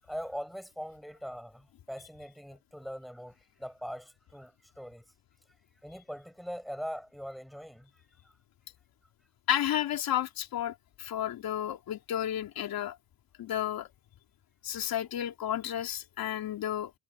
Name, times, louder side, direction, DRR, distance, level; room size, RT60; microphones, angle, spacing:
voice 1, 0.0-5.0 5.8-8.0, equal, ahead, 7.4 m, -41 dB
voice 2, 9.5-13.0 13.4-13.9 14.6-16.9, left 11 dB, 65° left, 3.1 m, -32 dB
cardioid pair, 100°, 38 cm